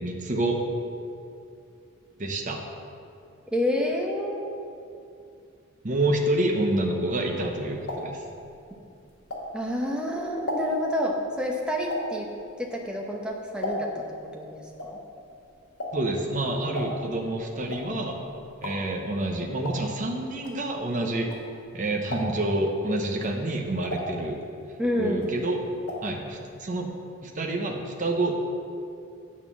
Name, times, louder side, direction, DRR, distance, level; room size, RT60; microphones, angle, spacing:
voice 1, 0.0-0.6 2.2-2.6 5.8-8.2 15.9-18.2 18.6-21.3 21.7-24.4 25.0-25.6 26.0-26.9 27.2-28.3, right 1 dB, 35° right, 1 dB, 0.8 m, -28 dB
voice 2, 3.5-4.5 9.5-12.3 12.6-14.1 14.3-15.0 24.8-25.2, left 1 dB, 5° right, 0 dB, 0.9 m, -28 dB
sound 1, 7.3-9.9 10.2-14.2 14.4-21.7 22.0-22.6 23.1-24.8 25.1-26.2 26.4-26.5 26.8-26.9, left 1 dB, 90° left, 1.7 m, -36 dB
9.0 x 4.4 x 7.2 m, 2.5 s
head